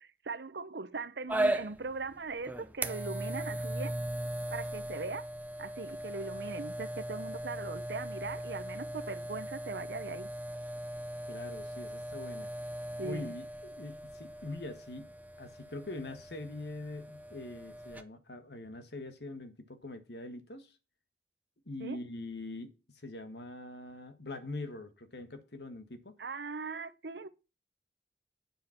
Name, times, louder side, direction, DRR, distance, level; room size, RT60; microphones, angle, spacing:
voice 1, 0.0-3.9 4.5-5.3 5.6-10.3 13.0-13.3 21.8-22.0 26.2-27.3, right 3 dB, 75° right, 0.9 m, -40 dB
sound 1, 1.3-18.0, right 1 dB, 10° right, 0.7 m, -38 dB
voice 2, 11.3-12.5 13.0-15.1 15.4-20.8 21.7-26.1, left 2 dB, 70° left, 1.6 m, -43 dB
9.1 x 7.5 x 5.8 m
head